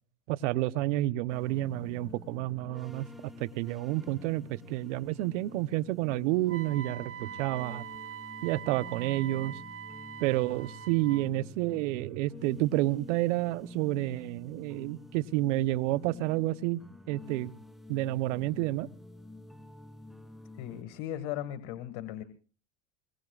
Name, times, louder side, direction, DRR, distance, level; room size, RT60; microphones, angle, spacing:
voice 1, 0.3-7.8 8.4-9.6 10.2-16.8 17.1-17.5 17.9-18.9, right 17 dB, 80° right, 1.0 m, -30 dB
sound 1, 1.3-20.8, left 2 dB, ahead, 3.1 m, -49 dB
Wind instrument woodwind instrument, 6.5-11.3, right 9 dB, 40° right, 1.0 m, -43 dB
voice 2, 20.6-22.2, left 12 dB, 70° left, 2.0 m, -37 dB
23.5 x 22.0 x 2.4 m
supercardioid pair, 105°, 36 cm